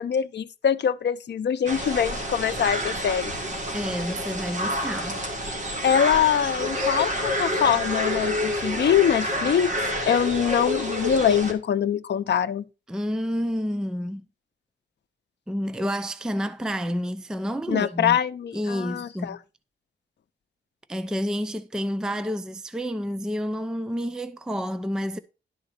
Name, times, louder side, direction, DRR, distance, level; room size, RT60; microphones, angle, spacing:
voice 1, 0.0-3.3 5.8-9.7 10.1-12.6 17.7-19.4, left 8 dB, 60° left, 0.6 m, -23 dB
sound 1, 1.7-11.5, equal, 40° right, 2.1 m, -28 dB
voice 2, 3.7-5.2 12.9-14.2 15.5-18.2 18.5-19.4 20.9-25.2, equal, 5° right, 0.4 m, -29 dB
11.5 x 3.9 x 6.5 m
wide cardioid pair, 175°, 20 cm